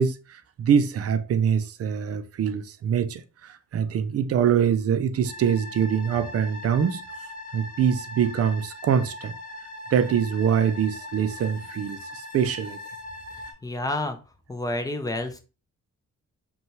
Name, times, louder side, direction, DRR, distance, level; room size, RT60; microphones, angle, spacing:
voice 1, 0.0-7.1 7.5-9.4 9.9-12.8, right 7 dB, 50° right, 0.4 m, -24 dB
sound 1, 5.2-13.5, left 2 dB, 25° left, 1.4 m, -40 dB
voice 2, 13.6-14.2 14.5-15.4, left 2 dB, 10° left, 0.5 m, -29 dB
5.5 x 2.4 x 3.1 m
wide cardioid pair, 165°, 31 cm